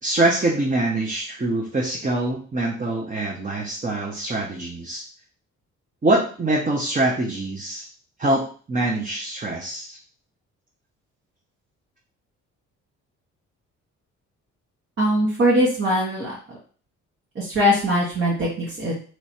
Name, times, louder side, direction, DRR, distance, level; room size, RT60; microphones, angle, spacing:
voice 1, 0.0-5.0 6.0-7.9 8.2-8.4 8.7-10.0, right 2 dB, 25° right, -2 dB, 1.0 m, -24 dB
voice 2, 15.0-16.6 17.3-18.9, equal, 45° right, -6 dB, 1.7 m, -21 dB
3.2 x 3.2 x 4.3 m, 0.41 s
cardioid pair, 90°, 30 cm